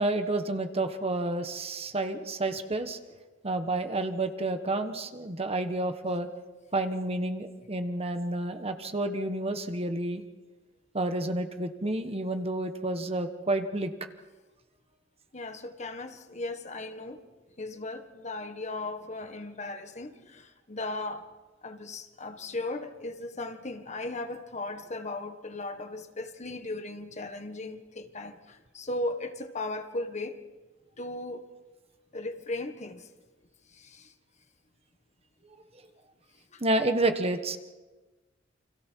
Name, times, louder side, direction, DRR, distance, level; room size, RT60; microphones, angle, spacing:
voice 1, 0.0-3.0 3.4-6.3 6.7-10.2 10.9-13.9 36.6-37.6, right 2 dB, 30° right, 1.4 m, -30 dB
voice 2, 15.3-17.2 17.6-21.3 21.6-30.4 31.0-31.5 32.1-33.1 33.7-34.1 36.5-36.6, left 2 dB, 40° left, 1.6 m, -37 dB
29.5 x 26.5 x 4.7 m
head